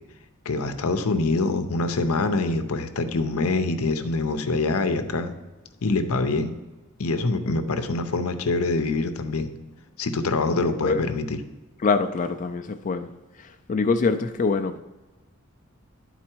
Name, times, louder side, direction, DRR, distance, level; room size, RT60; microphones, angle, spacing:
voice 1, 0.5-5.3 5.8-6.5 7.0-9.5 10.0-11.4, left 3 dB, 90° left, 0.7 m, -25 dB
voice 2, 11.8-13.1 13.7-14.8, left 4 dB, 35° left, 0.4 m, -24 dB
10.5 x 4.1 x 4.5 m
head